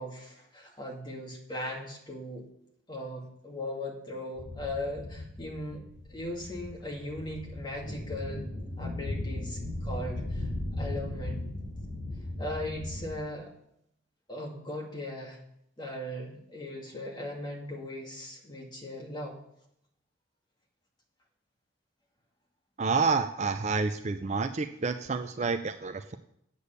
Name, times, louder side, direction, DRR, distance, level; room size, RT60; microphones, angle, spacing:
voice 1, 0.0-2.4 2.9-8.4 8.8-11.6 12.4-13.5 14.3-15.4 15.8-19.4, left 1 dB, 20° left, -2 dB, 2.2 m, -38 dB
sound 1, 4.4-13.2, left 1 dB, 80° left, 4.3 m, -37 dB
voice 2, 22.8-26.2, right 4 dB, 35° right, 8 dB, 0.4 m, -29 dB
8.3 x 8.3 x 6.8 m, 0.75 s
head